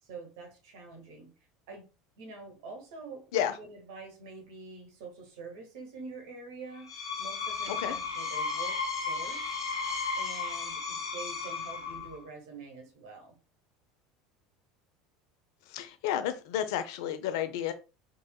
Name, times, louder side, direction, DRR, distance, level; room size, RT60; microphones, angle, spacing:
voice 1, 0.0-1.3 1.7-1.9 2.2-9.6 10.2-13.4, right 3 dB, 70° right, 4 dB, 1.6 m, -46 dB
Screech, 6.7-12.2, left 4 dB, 85° left, 1.0 m, -34 dB
voice 2, 15.7-17.7, left 10 dB, 70° left, 10 dB, 0.6 m, -31 dB
4.0 x 3.7 x 2.3 m, 0.31 s
hypercardioid pair, 75°, 2 cm